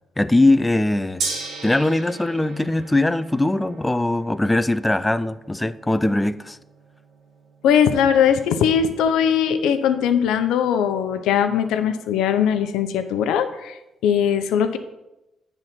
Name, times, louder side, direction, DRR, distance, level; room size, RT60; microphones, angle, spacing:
voice 1, 0.2-1.2 1.6-6.6, left 2 dB, 10° left, 14 dB, 0.4 m, -20 dB
Gong, 1.2-11.4, right 4 dB, 75° right, 1.6 m, -39 dB
voice 2, 7.6-14.8, left 8 dB, 90° left, 9 dB, 0.6 m, -20 dB
9.0 x 4.0 x 5.8 m, 0.94 s
cardioid pair, 90°, 0 cm